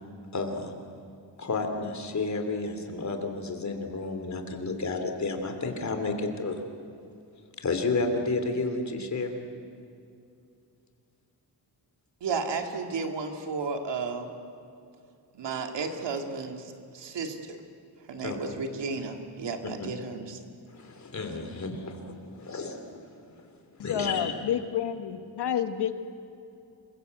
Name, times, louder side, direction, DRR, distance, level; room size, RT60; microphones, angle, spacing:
voice 1, 0.3-0.7 1.4-6.6 7.6-9.4 18.2-18.4 19.8-19.9 20.7-23.4 23.8-24.3, left 3 dB, 40° left, 5 dB, 3.2 m, -31 dB
voice 2, 12.2-14.3 15.3-17.6 18.0-20.4, right 4 dB, 80° right, 4 dB, 2.6 m, -33 dB
voice 3, 23.8-25.9, left 9 dB, 65° left, 8 dB, 1.5 m, -29 dB
27.0 x 22.5 x 8.1 m, 2.5 s
wide cardioid pair, 130°, 42 cm